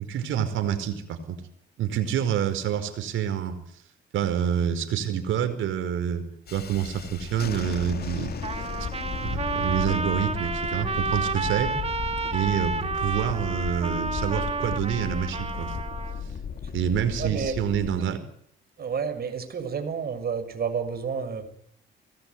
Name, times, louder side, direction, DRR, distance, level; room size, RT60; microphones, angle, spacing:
voice 1, 0.0-1.4 1.8-3.6 4.1-6.2 6.5-8.3 9.1-11.7 12.3-15.8 16.7-18.2, right 9 dB, 80° right, 9 dB, 5.0 m, -27 dB
Thunderstorm, 6.5-18.0, left 7 dB, 55° left, 2.7 m, -35 dB
Trumpet, 8.4-16.2, right 4 dB, 30° right, 2.5 m, -30 dB
voice 2, 17.2-17.6 18.8-21.5, right 6 dB, 50° right, 7 dB, 6.4 m, -30 dB
24.5 x 20.0 x 9.5 m, 0.70 s
cardioid pair, 90°, 20 cm